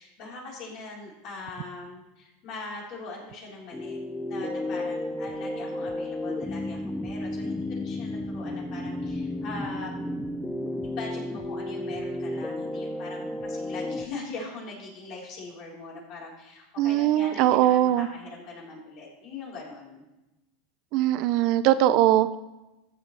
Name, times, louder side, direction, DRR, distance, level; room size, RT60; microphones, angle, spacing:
voice 1, 0.0-4.0 4.2-10.1 10.8-20.0, left 3 dB, 55° left, -3 dB, 4.2 m, -41 dB
sound 1, 3.7-14.1, left 1 dB, 10° left, 0.7 m, -32 dB
voice 2, 16.8-18.1 20.9-22.4, right 13 dB, 60° right, 13 dB, 0.5 m, -21 dB
14.0 x 8.0 x 3.4 m, 1.0 s
supercardioid pair, 115°, 0 cm